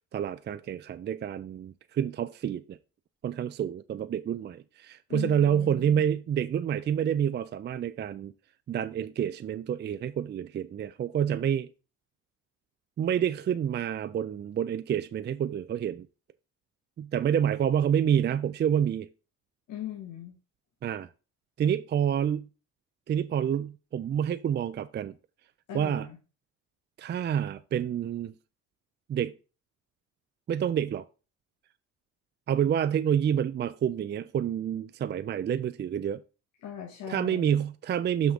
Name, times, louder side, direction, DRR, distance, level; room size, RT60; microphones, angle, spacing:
voice 1, 0.1-2.8 3.2-8.3 8.7-11.7 13.0-16.1 17.0-19.1 20.8-21.1 21.6-22.5 23.1-25.1 25.7-26.1 27.0-28.3 29.1-29.3 30.5-31.0 32.5-36.2 37.1-38.3, right 9 dB, 35° right, 0.4 m, -28 dB
voice 2, 5.1-6.1 19.7-20.4 25.7-26.2 36.6-37.6, left 10 dB, 75° left, 1.4 m, -39 dB
5.8 x 5.5 x 3.7 m
cardioid pair, 90°, 30 cm